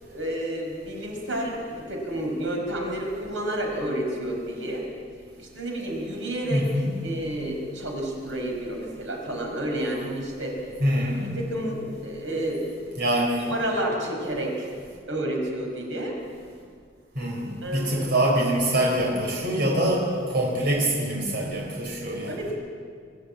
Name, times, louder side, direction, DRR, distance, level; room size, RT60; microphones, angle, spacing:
voice 1, 0.0-4.8 5.4-6.6 7.0-10.6 11.4-12.6 13.5-14.5 15.1-16.2 17.6-18.1 22.3-22.5, right 1 dB, 85° right, 0 dB, 5.3 m, -30 dB
voice 2, 6.5-6.9 10.8-11.4 13.0-13.5 17.2-22.4, right 1 dB, 55° right, -2 dB, 4.2 m, -24 dB
23.5 x 15.0 x 8.6 m, 2.1 s
head